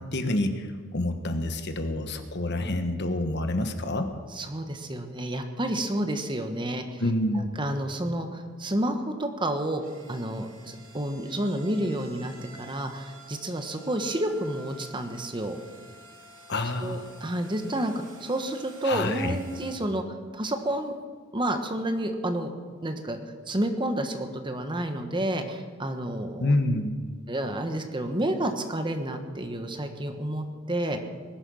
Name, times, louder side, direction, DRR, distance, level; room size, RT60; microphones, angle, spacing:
voice 1, 0.0-4.1 7.0-7.6 16.5-17.1 18.8-19.4 26.4-27.0, left 1 dB, 55° left, 7 dB, 1.3 m, -28 dB
voice 2, 4.3-7.0 7.3-9.8 10.1-12.3 12.6-15.6 16.8-17.9 18.2-20.0 20.3-20.9 21.3-22.5 22.8-23.2 23.5-26.5 27.3-31.0, right 1 dB, 25° right, 6 dB, 1.3 m, -30 dB
sound 1, 9.5-19.7, right 1 dB, 75° right, 2.7 m, -50 dB
20.5 x 11.0 x 6.4 m, 1.5 s
head